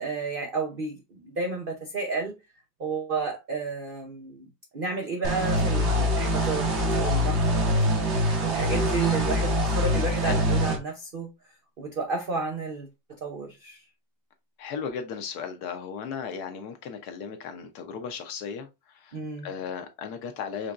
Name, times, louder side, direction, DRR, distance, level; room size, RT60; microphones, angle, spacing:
voice 1, 0.0-2.4 2.8-6.7 7.0-7.6 8.0-11.3 11.8-13.8 19.1-19.5, right 3 dB, 90° right, 0.4 m, -32 dB
sound 1, 5.2-10.8, equal, 45° right, 1.1 m, -24 dB
voice 2, 14.6-19.2 19.4-20.7, left 6 dB, 65° left, 1.2 m, -36 dB
5.2 x 3.4 x 2.4 m
omnidirectional pair, 2.0 m